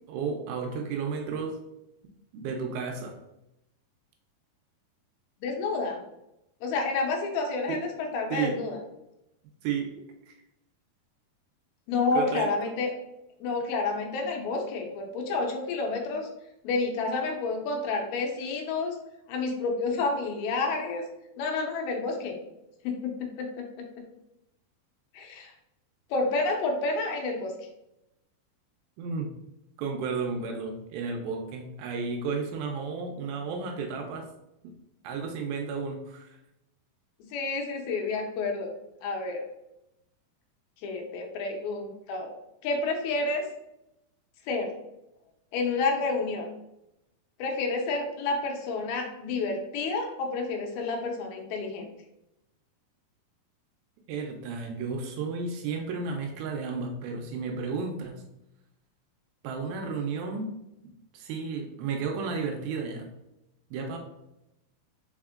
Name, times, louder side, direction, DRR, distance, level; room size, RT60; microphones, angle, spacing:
voice 1, 0.1-1.6 2.3-3.2 7.7-7.8 8.3-8.6 9.6-10.3 12.1-12.5 29.0-29.3 29.8-34.2 35.0-36.4 54.1-58.2 59.4-60.5 60.8-63.1 63.7-64.0, right 5 dB, 80° right, 3 dB, 2.3 m, -33 dB
voice 2, 5.4-6.0 6.6-8.8 11.9-12.9 13.4-16.3 16.6-19.0 19.3-21.1 21.4-22.4 22.8-23.9 25.1-25.5 26.1-27.5 37.3-38.7 39.0-39.5 40.8-42.4 42.6-43.5 44.5-44.7 45.5-46.5 47.4-51.9, left 3 dB, 85° left, 2 dB, 2.5 m, -29 dB
4.9 x 4.4 x 2.4 m, 0.88 s
omnidirectional pair, 4.5 m